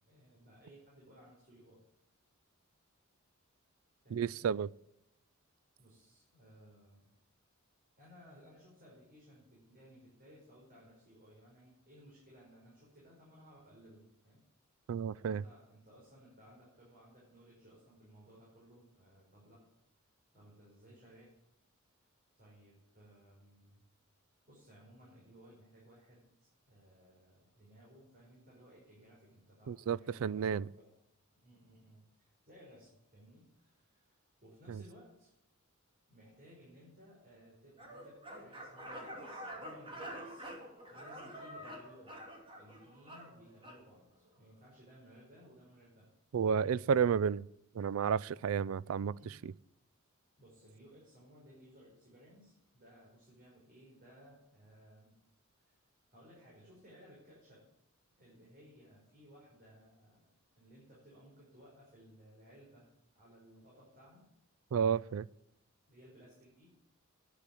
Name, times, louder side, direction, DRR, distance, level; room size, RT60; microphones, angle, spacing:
voice 1, 0.1-1.8 4.0-4.4 5.8-7.1 8.0-14.4 15.1-19.7 20.0-20.1 20.3-21.3 22.4-23.8 24.5-30.9 31.4-35.3 36.1-40.5 40.8-42.2 42.5-46.1 48.8-49.4 50.4-55.2 55.7-55.8 56.1-57.7 58.2-60.3 60.6-64.2 65.9-66.7, equal, 45° right, 5.3 m, -59 dB
voice 2, 4.1-4.7 14.9-15.4 29.7-30.7 34.7-34.8 46.3-47.5 47.7-49.1 49.4-49.5 64.7-65.3, right 7 dB, 75° right, 0.4 m, -31 dB
sound 1, 37.8-43.8, equal, 25° right, 2.8 m, -47 dB
10.0 x 8.4 x 9.0 m
head